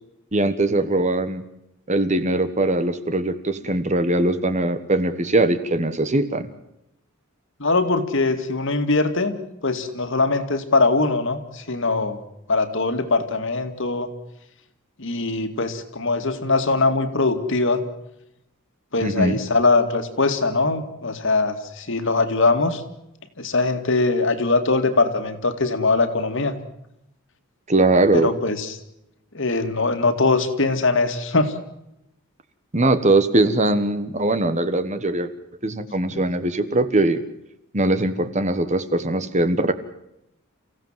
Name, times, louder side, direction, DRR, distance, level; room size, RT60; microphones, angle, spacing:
voice 1, 0.3-1.4 1.9-6.5 19.0-19.4 27.7-28.3 32.7-35.3 35.6-37.2 37.7-39.7, right 2 dB, 30° right, 11 dB, 1.4 m, -21 dB
voice 2, 7.6-9.4 9.6-12.2 12.5-14.1 15.0-17.8 18.9-22.8 23.4-26.5 28.1-28.7 29.3-31.5 36.1-36.2, left 3 dB, 60° left, 7 dB, 2.4 m, -21 dB
29.5 x 16.0 x 7.6 m, 0.86 s
head